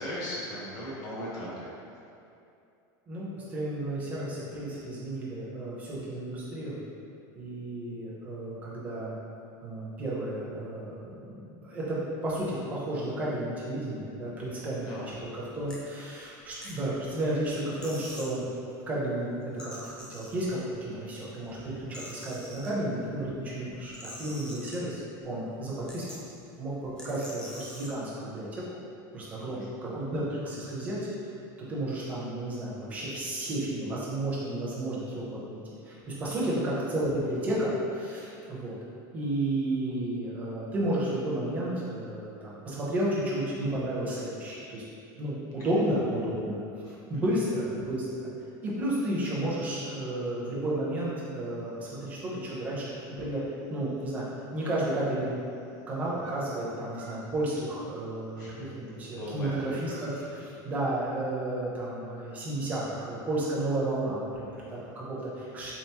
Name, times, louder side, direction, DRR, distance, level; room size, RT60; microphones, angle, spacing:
voice 1, 0.0-1.7 14.5-15.1 21.7-22.0 29.4-29.6 36.2-36.3 45.6-45.8 46.8-46.9 58.4-58.6 59.1-59.6 60.4-60.5 65.4-65.6, equal, 35° left, -7 dB, 1.0 m, -39 dB
voice 2, 3.1-6.8 7.3-9.2 9.6-14.9 15.2-18.5 18.9-26.0 26.6-28.5 29.1-31.0 31.6-35.6 35.8-38.8 39.1-44.8 45.1-46.6 47.1-48.3 48.6-53.4 53.7-54.3 54.5-55.3 55.9-65.7, right 1 dB, 15° right, -7 dB, 0.7 m, -32 dB
sound 1, 15.1-15.3 15.7-15.8 16.4-17.1 17.5-17.6 17.8-18.3 19.4-20.7 21.4-22.7 23.7-25.1 25.5-25.6 25.9-26.4 27.0-27.9, left 1 dB, 5° left, 0.3 m, -45 dB
sound 2, 51.5-52.0 52.4-52.5 52.8-52.9 53.2-54.2 54.5-55.6 55.9-58.4 59.1-60.1, right 3 dB, 60° right, 0.9 m, -50 dB
3.6 x 3.5 x 2.9 m, 2.6 s
cardioid pair, 180°, 10 cm